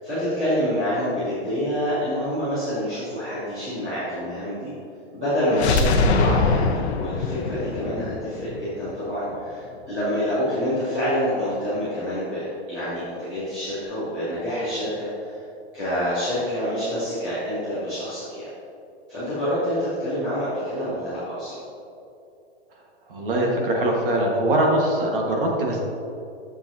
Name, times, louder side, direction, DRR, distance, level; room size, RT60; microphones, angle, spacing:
voice 1, 0.0-4.7 5.1-15.4 15.7-18.5 19.1-21.6, equal, 5° right, -16 dB, 0.3 m, -27 dB
sound 1, 5.5-9.4, left 3 dB, 70° left, 0.8 m, -23 dB
voice 2, 23.1-25.8, right 1 dB, 50° right, 0 dB, 1.5 m, -22 dB
8.6 x 7.1 x 2.7 m, 2.6 s
hypercardioid pair, 175°, 34 cm